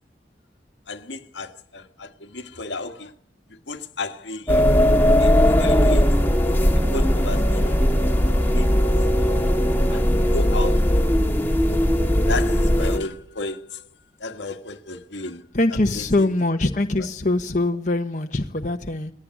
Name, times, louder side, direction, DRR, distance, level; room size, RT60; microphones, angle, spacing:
voice 1, 0.9-3.1 3.5-4.7 5.2-6.2 6.6-7.8 8.5-9.5 9.9-10.9 11.6-11.7 12.3-13.9 14.2-16.0 17.0-17.1, left 2 dB, 80° left, 1.7 m, -34 dB
sound 1, 4.5-13.0, equal, 10° left, 1.9 m, -18 dB
voice 2, 15.5-19.1, left 2 dB, 45° left, 1.2 m, -23 dB
20.5 x 18.5 x 9.7 m
head